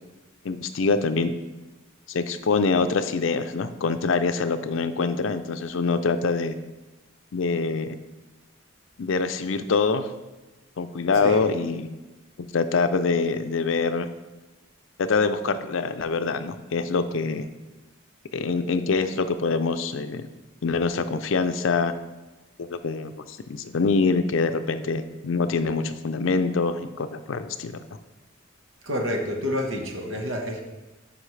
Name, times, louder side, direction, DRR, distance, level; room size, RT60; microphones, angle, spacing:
voice 1, 0.4-1.3 2.1-6.6 7.3-7.9 9.0-10.1 10.8-11.9 12.5-14.1 15.0-17.5 18.3-20.3 20.6-21.9 22.6-27.8, left 4 dB, 70° left, 10 dB, 0.5 m, -25 dB
voice 2, 28.8-30.6, left 1 dB, 75° right, 1 dB, 1.3 m, -28 dB
10.0 x 5.6 x 3.3 m, 1.1 s
head